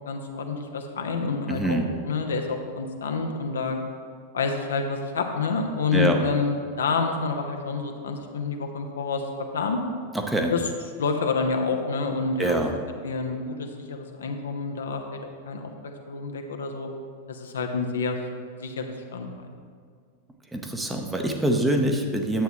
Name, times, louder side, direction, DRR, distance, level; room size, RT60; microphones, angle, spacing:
voice 1, 0.1-1.8 2.0-3.8 4.3-9.2 9.5-9.8 10.5-10.7 11.0-12.6 13.0-15.2 15.5-16.9 17.3-18.3 18.6-18.8 19.1-19.3, left 4 dB, 65° left, 4 dB, 0.8 m, -28 dB
voice 2, 1.5-1.9 5.9-6.2 10.1-10.5 12.4-12.7 20.5-22.4, right 1 dB, 10° right, 3 dB, 0.8 m, -24 dB
9.9 x 7.8 x 3.0 m, 2.1 s
figure-of-eight pair, 90°, 0 cm